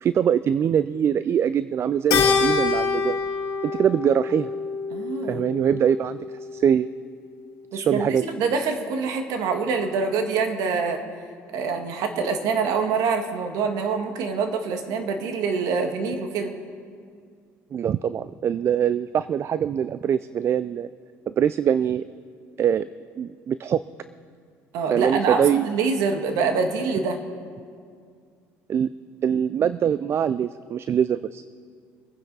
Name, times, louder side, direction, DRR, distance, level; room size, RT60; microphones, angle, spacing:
voice 1, 0.0-3.2 3.6-4.5 5.3-6.9 7.7-8.2 17.7-20.9 21.3-22.0 22.6-22.9 23.2-23.8 24.9-25.6 28.7-28.9 29.2-31.4, right 8 dB, 40° right, 15 dB, 0.3 m, -23 dB
Keyboard (musical), 2.1-6.7, left 5 dB, 65° left, 2.3 m, -26 dB
voice 2, 4.9-5.5 7.7-11.0 11.5-16.5 24.7-27.2, right 5 dB, 70° right, 6 dB, 1.7 m, -25 dB
24.0 x 9.9 x 4.0 m, 2.1 s
supercardioid pair, 90°, 7 cm